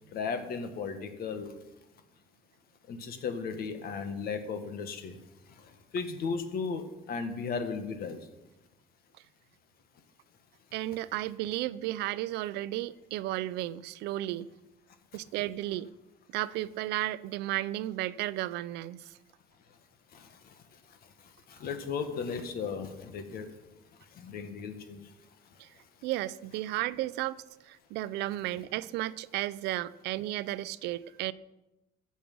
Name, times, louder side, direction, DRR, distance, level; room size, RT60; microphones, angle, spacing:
voice 1, 0.1-1.5 2.9-8.3 19.7-19.8 20.1-23.6 23.9-25.6, left 5 dB, 65° left, 1.6 m, -37 dB
voice 2, 10.7-14.5 15.1-15.9 16.3-19.1 25.6-25.7 26.0-27.4 27.7-31.3, right 15 dB, 85° right, 0.5 m, -33 dB
15.0 x 7.4 x 5.4 m
cardioid pair, 110°, 17 cm